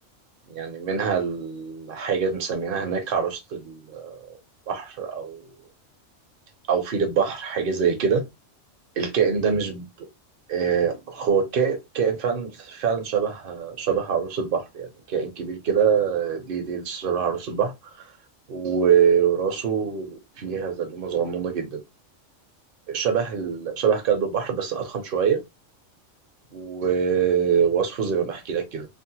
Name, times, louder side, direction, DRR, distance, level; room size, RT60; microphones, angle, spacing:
voice 1, 0.5-4.3 4.7-5.5 6.7-8.2 9.0-10.1 10.5-17.7 18.5-21.8 22.9-25.4 26.5-28.9, right 7 dB, 50° right, 0.8 m, -24 dB
2.6 x 2.1 x 2.7 m
omnidirectional pair, 1.3 m